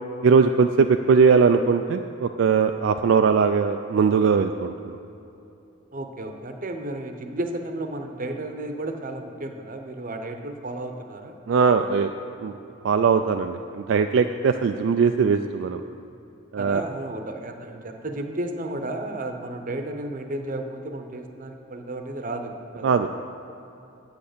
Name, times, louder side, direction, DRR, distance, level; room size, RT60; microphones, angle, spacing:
voice 1, 0.2-5.0 11.5-12.1 12.4-12.5 12.8-15.8 16.5-16.8 22.8-23.1, right 5 dB, 70° right, 7 dB, 0.3 m, -20 dB
voice 2, 5.9-11.4 16.6-23.0, right 1 dB, 45° right, 5 dB, 0.8 m, -33 dB
8.2 x 7.8 x 6.7 m, 2.8 s
head